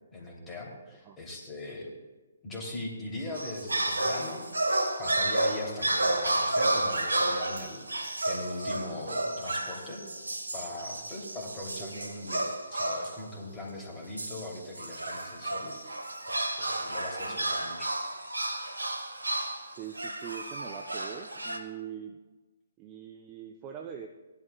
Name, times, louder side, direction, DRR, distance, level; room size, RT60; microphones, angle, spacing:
voice 1, 0.1-1.9 2.4-10.0 10.5-17.9, left 2 dB, 15° left, -3 dB, 2.7 m, -40 dB
sound 1, 3.3-13.2 14.2-21.6, right 1 dB, 85° right, 1.1 m, -31 dB
voice 2, 11.5-11.9 17.3-17.4 19.8-22.2 22.8-24.1, right 9 dB, 25° right, 5 dB, 0.6 m, -43 dB
17.0 x 11.5 x 2.3 m, 1.2 s
figure-of-eight pair, 130°, 0 cm